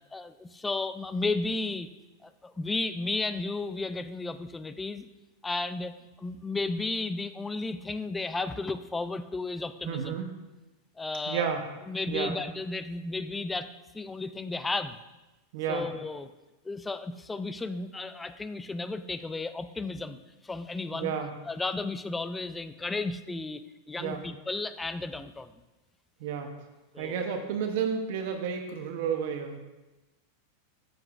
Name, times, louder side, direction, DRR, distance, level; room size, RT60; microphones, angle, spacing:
voice 1, 0.1-1.9 2.2-5.1 5.4-10.2 11.0-11.5 11.9-15.0 15.7-16.3 16.6-20.2 20.4-21.1 21.5-23.6 23.9-25.5 26.9-27.2, left 3 dB, 10° left, 12 dB, 0.3 m, -33 dB
voice 2, 9.8-10.3 11.3-11.6 12.1-12.4 15.5-15.9 20.9-21.3 24.0-24.2 26.2-26.5 27.0-29.6, right 7 dB, 65° right, 4 dB, 0.8 m, -31 dB
7.7 x 7.6 x 2.5 m, 1.1 s
supercardioid pair, 135°, 0 cm